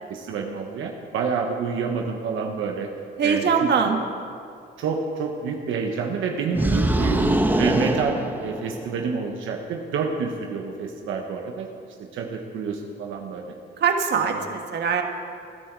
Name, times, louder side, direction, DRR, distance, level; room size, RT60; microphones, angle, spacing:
voice 1, 0.1-2.9 3.2-3.7 4.8-7.2 7.6-11.7 12.0-13.6 14.2-14.5, right 5 dB, 85° right, 2 dB, 1.4 m, -28 dB
voice 2, 3.2-4.0 6.6-7.3 13.8-15.0, right 6 dB, 60° right, 4 dB, 1.6 m, -23 dB
sound 1, 6.5-9.0, right 1 dB, 10° right, 1.3 m, -23 dB
20.0 x 11.5 x 4.8 m, 2.4 s
cardioid pair, 90°, 20 cm